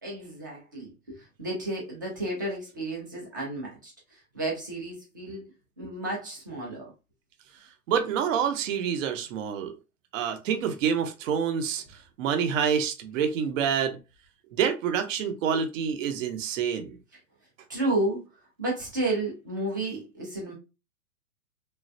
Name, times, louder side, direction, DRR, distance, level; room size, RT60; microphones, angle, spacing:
voice 1, 0.0-5.5 5.8-6.9 17.7-18.2 18.6-20.5, right 2 dB, 15° right, 0.3 m, -32 dB
voice 2, 7.9-9.7 10.1-11.8 12.2-14.0 14.5-16.9, right 7 dB, 55° right, 0.7 m, -27 dB
3.1 x 2.3 x 2.5 m
hypercardioid pair, 150°, 46 cm